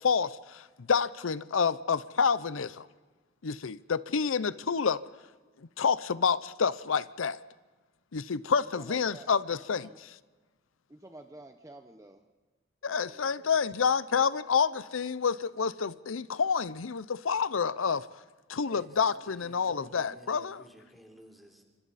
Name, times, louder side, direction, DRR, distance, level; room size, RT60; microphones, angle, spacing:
voice 1, 0.0-2.9 3.4-5.0 5.8-7.4 8.1-9.9 12.8-18.1 18.5-20.6, left 6 dB, 85° left, 0.6 m, -28 dB
voice 2, 8.8-10.0 10.9-12.2 12.8-13.5, right 1 dB, 15° right, 0.9 m, -50 dB
voice 3, 18.6-21.6, equal, ahead, 3.5 m, -54 dB
29.0 x 25.5 x 4.2 m
head